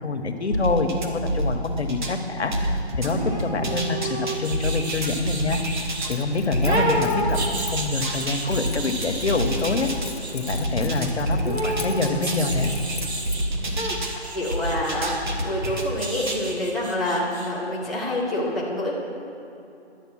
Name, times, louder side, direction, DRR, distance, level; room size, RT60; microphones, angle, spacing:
voice 1, 0.0-5.6 6.1-7.4 7.7-9.9 10.3-12.7, left 3 dB, 75° left, 5 dB, 1.2 m, -26 dB
sound 1, 0.5-2.2 2.5-6.1 6.5-10.1 10.5-14.1 14.5-16.4, right 1 dB, 45° right, 1.2 m, -28 dB
sound 2, 3.1-6.1 6.7-10.6 11.4-13.5 13.8-17.5 17.8-17.9, right 2 dB, 70° right, 1.9 m, -31 dB
Keys jangling, 5.4-13.4, left 4 dB, 50° left, 0.7 m, -40 dB
voice 2, 14.3-15.1 15.4-18.9, left 1 dB, ahead, -8 dB, 0.5 m, -27 dB
11.5 x 8.0 x 6.2 m, 2.9 s
hypercardioid pair, 175°, 33 cm